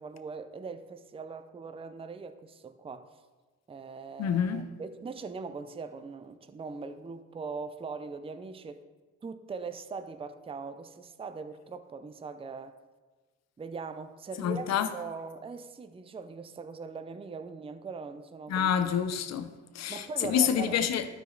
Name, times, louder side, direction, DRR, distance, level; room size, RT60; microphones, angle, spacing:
voice 1, 0.0-3.1 3.7-8.8 9.2-12.8 13.6-18.7 19.9-20.8, right 4 dB, 20° right, 0.5 m, -41 dB
voice 2, 4.2-4.6 14.4-14.9 18.5-21.0, left 8 dB, 60° left, 0.7 m, -28 dB
12.5 x 5.0 x 3.9 m
cardioid pair, 90°, 30 cm